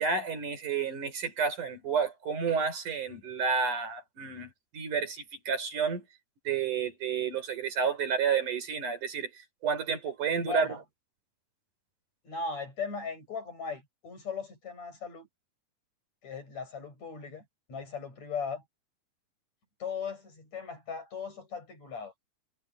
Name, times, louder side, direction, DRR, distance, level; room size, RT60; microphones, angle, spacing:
voice 1, 0.0-6.1 6.5-9.3 9.6-10.8, right 6 dB, 70° right, 5.8 m, -30 dB
voice 2, 10.4-10.8 12.2-15.3 16.2-18.6 19.8-22.3, left 5 dB, 55° left, 8.6 m, -38 dB
omnidirectional pair, 3.7 m